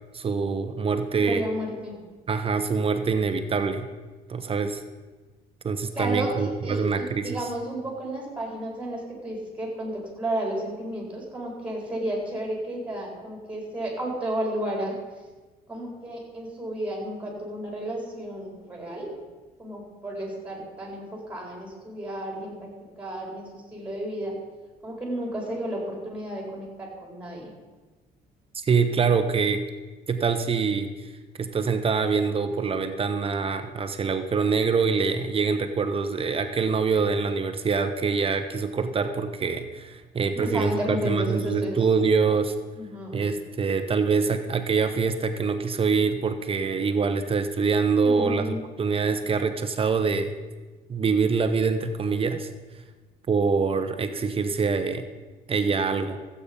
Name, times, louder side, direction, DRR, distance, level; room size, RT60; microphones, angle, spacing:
voice 1, 0.1-1.4 2.3-3.9 4.3-4.8 5.6-7.5 28.6-29.6 30.1-31.1 31.4-42.5 43.1-50.3 50.9-52.5 53.3-55.1 55.5-56.2, right 5 dB, 35° right, 8 dB, 0.9 m, -25 dB
voice 2, 1.1-2.0 5.9-15.0 15.7-19.1 19.6-22.7 23.0-24.3 24.8-27.5 40.3-41.7 42.7-43.2 48.0-48.6, right 1 dB, 5° right, -1 dB, 4.5 m, -32 dB
14.5 x 8.5 x 5.3 m, 1.3 s
cardioid pair, 110°, 17 cm